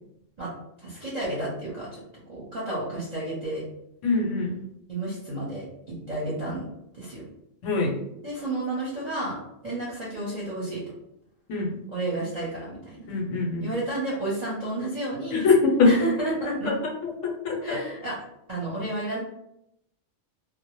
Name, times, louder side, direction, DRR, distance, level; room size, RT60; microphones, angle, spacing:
voice 1, 0.8-3.6 4.9-6.6 6.9-7.2 8.2-10.8 11.9-13.1 13.6-15.5 15.8-16.7 17.6-18.2 18.5-19.2, right 2 dB, 45° right, -6 dB, 0.6 m, -31 dB
voice 2, 4.0-4.6 7.6-8.0 11.5-11.7 13.1-13.7 15.3-16.0 16.7-17.8, left 3 dB, 90° left, 0 dB, 0.9 m, -23 dB
2.1 x 2.0 x 2.9 m, 0.79 s
omnidirectional pair, 1.3 m